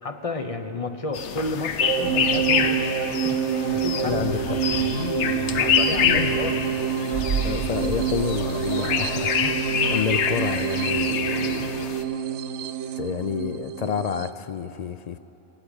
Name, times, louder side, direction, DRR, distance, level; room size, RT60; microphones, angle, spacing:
voice 1, 0.0-3.4 3.7-4.2 4.8-6.6, left 3 dB, 35° left, 7 dB, 0.9 m, -32 dB
sound 1, 1.1-12.0, left 7 dB, 85° left, 1.1 m, -26 dB
sound 2, 1.8-14.3, right 9 dB, 90° right, 0.9 m, -27 dB
voice 2, 4.0-4.6 7.4-11.9 12.9-15.2, left 7 dB, 60° left, 12 dB, 0.4 m, -29 dB
sound 3, 7.1-9.8 10.1-10.2, right 5 dB, 65° right, 1.1 m, -32 dB
17.5 x 8.2 x 8.9 m, 2.9 s
omnidirectional pair, 1.2 m